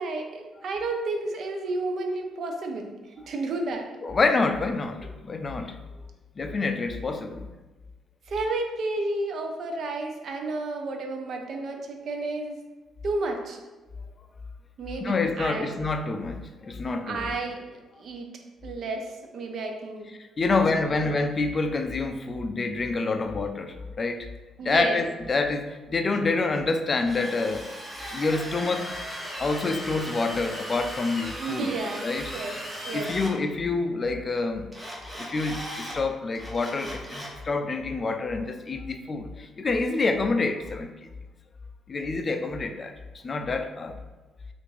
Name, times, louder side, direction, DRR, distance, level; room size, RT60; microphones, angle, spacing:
voice 1, 0.0-3.9 8.3-12.6 13.0-13.6 14.8-15.7 17.0-18.3 18.6-20.1 20.5-20.6 20.9-21.1 24.6-25.0 31.4-32.0 32.3-32.6 32.8-33.1, right 3 dB, 60° right, 4 dB, 0.5 m, -31 dB
voice 2, 4.0-5.8 6.4-7.5 15.0-17.3 20.4-24.3 24.6-27.7 28.1-28.9 29.4-31.7 32.0-32.6 32.9-34.7 35.2-40.9 41.9-42.9 43.2-44.0, left 3 dB, 35° left, 7 dB, 0.3 m, -27 dB
Drill, 27.0-33.3 34.7-36.0 36.3-37.4, equal, 15° right, 0.8 m, -37 dB
3.3 x 2.5 x 3.2 m, 1.2 s
cardioid pair, 90°, 0 cm